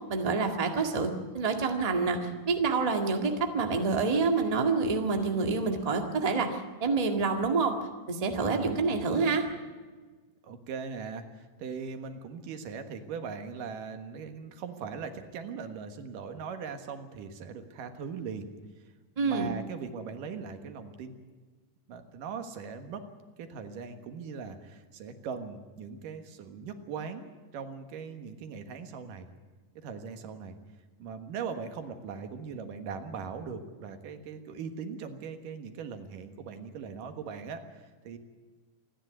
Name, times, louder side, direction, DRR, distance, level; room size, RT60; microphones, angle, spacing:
voice 1, 0.1-7.8 8.1-9.5 19.2-19.5, right 4 dB, 15° right, 4 dB, 1.3 m, -27 dB
voice 2, 10.4-18.5 18.8-21.2 21.9-23.1 23.4-29.3 29.8-30.6 31.0-38.2, right 6 dB, 85° right, 7 dB, 3.1 m, -40 dB
27.5 x 10.5 x 9.5 m, 1.4 s
omnidirectional pair, 3.7 m